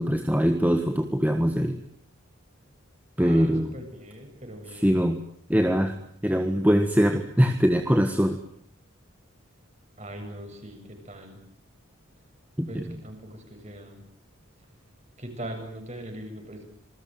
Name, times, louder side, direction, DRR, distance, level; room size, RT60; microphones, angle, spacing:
voice 1, 0.0-1.8 3.2-3.7 4.7-5.2 5.5-6.0 6.2-8.4 12.6-12.9, equal, 10° right, 6 dB, 1.5 m, -22 dB
voice 2, 3.2-5.0 10.0-11.4 12.7-14.0 15.2-16.6, right 1 dB, 30° right, 4 dB, 7.6 m, -41 dB
27.5 x 21.5 x 9.1 m, 0.67 s
head